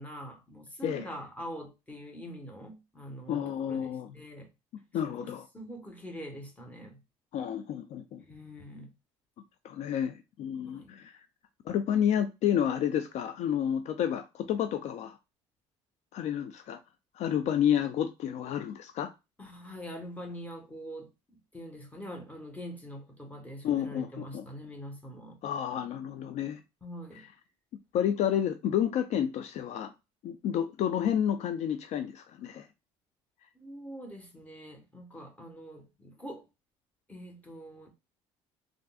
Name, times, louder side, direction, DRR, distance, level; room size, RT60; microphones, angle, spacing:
voice 1, 0.0-3.9 4.1-4.5 5.2-7.0 8.2-8.9 10.6-10.9 19.4-25.4 26.8-27.3 33.5-36.4 37.1-37.9, equal, 10° left, 1.2 m, -44 dB
voice 2, 3.3-4.1 4.9-5.4 7.3-8.2 9.6-11.2 11.7-15.2 16.1-16.8 17.1-19.1 23.6-24.5 25.4-26.6 27.9-29.9 30.2-32.7, left 9 dB, 60° left, 0.4 m, -30 dB
3.5 x 2.5 x 2.3 m
supercardioid pair, 85°, 13 cm